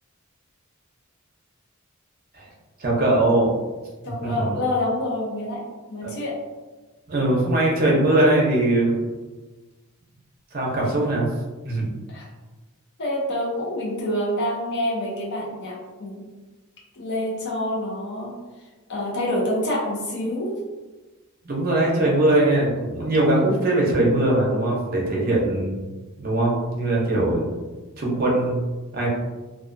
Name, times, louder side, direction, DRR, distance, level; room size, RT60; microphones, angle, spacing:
voice 1, 2.8-3.5 4.2-4.5 6.0-6.1 7.1-9.0 10.5-11.3 11.6-11.9 21.4-25.7 26.2-27.7 28.0-28.6 28.9-29.1, right 1 dB, 45° right, -3 dB, 0.7 m, -21 dB
voice 2, 4.0-5.6 5.9-6.3 12.1-12.3 13.0-16.3 16.9-18.3 18.9-20.6, left 1 dB, 55° left, -4 dB, 0.7 m, -27 dB
2.4 x 2.3 x 2.5 m, 1.2 s
head